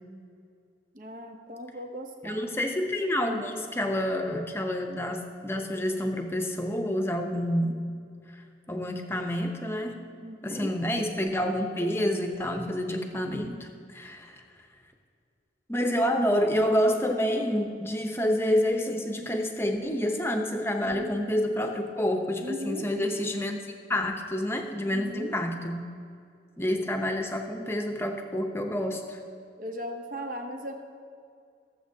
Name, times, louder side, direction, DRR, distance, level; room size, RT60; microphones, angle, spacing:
voice 1, 0.9-2.4 10.2-10.7 20.8-21.7 22.4-22.9 24.8-25.3 29.6-30.7, equal, 50° right, 4 dB, 0.8 m, -38 dB
voice 2, 2.2-7.8 8.7-10.0 10.4-14.4 15.7-23.6 23.9-25.8 26.6-29.2, left 1 dB, 15° left, 4 dB, 0.7 m, -28 dB
18.5 x 7.1 x 2.8 m, 2.3 s
head